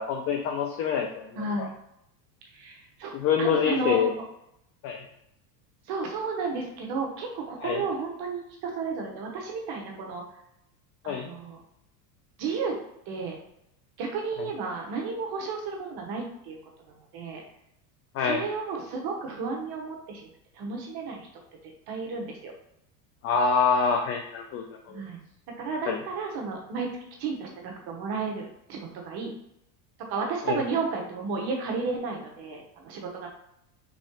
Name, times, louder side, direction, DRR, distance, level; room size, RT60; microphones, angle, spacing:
voice 1, 0.0-1.7 3.1-4.1 4.8-5.0 7.6-7.8 11.1-11.3 18.1-18.4 23.2-25.0 25.9-26.0 30.4-30.6, left 6 dB, 35° left, 3 dB, 0.4 m, -26 dB
voice 2, 1.4-1.7 2.5-3.1 3.4-4.2 5.9-10.2 11.0-11.6 12.4-12.7 13.1-13.4 14.0-16.6 17.1-17.4 18.2-20.3 20.5-21.3 21.9-22.5 24.9-25.2 25.6-26.9 27.2-29.3 30.1-33.3, right 4 dB, 50° right, 1 dB, 1.0 m, -32 dB
3.6 x 3.1 x 2.9 m, 0.80 s
supercardioid pair, 110°, 49 cm